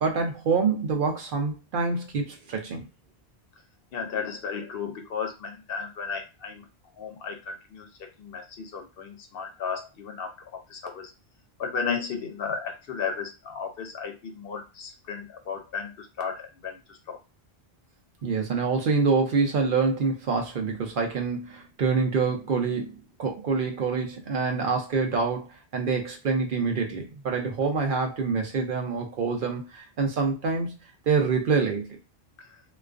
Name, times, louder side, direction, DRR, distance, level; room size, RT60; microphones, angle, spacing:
voice 1, 0.0-2.8 18.2-30.7 31.1-32.0, right 4 dB, 60° right, 0.7 m, -26 dB
voice 2, 3.9-6.6 7.0-7.9 8.2-10.3 10.7-11.1 11.6-17.2, left 6 dB, 65° left, 0.7 m, -34 dB
2.3 x 2.2 x 2.3 m
omnidirectional pair, 1.1 m